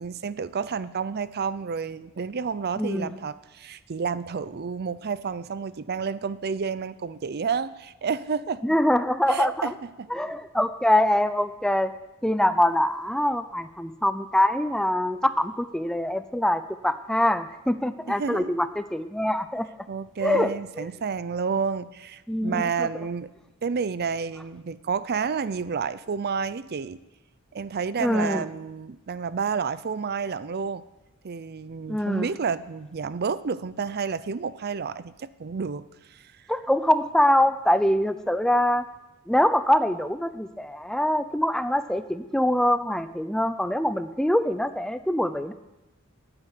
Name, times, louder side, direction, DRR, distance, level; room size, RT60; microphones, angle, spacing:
voice 1, 0.0-8.6 9.3-10.1 18.1-18.5 19.9-23.3 23.6-27.0 27.5-30.8 31.2-36.3, right 5 dB, 45° right, 16 dB, 0.5 m, -30 dB
voice 2, 2.8-3.2 8.6-9.7 10.1-11.9 12.2-19.7 20.2-20.9 22.3-22.7 28.0-28.4 31.9-32.3 36.5-38.8 39.3-45.5, left 1 dB, 5° left, 12 dB, 0.5 m, -24 dB
13.0 x 8.8 x 9.5 m, 1.0 s
head